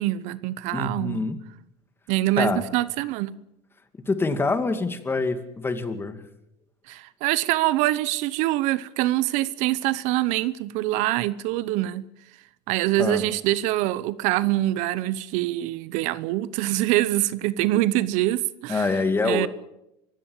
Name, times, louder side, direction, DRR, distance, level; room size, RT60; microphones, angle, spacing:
voice 1, 0.0-1.2 2.1-3.4 6.9-12.1 12.7-18.9 19.2-19.5, right 16 dB, 70° right, 0.9 m, -24 dB
voice 2, 0.7-1.4 2.4-2.7 4.1-6.2 13.0-13.2 18.7-19.5, left 3 dB, 15° left, 2.4 m, -25 dB
24.0 x 16.0 x 7.3 m
supercardioid pair, 110°, 13 cm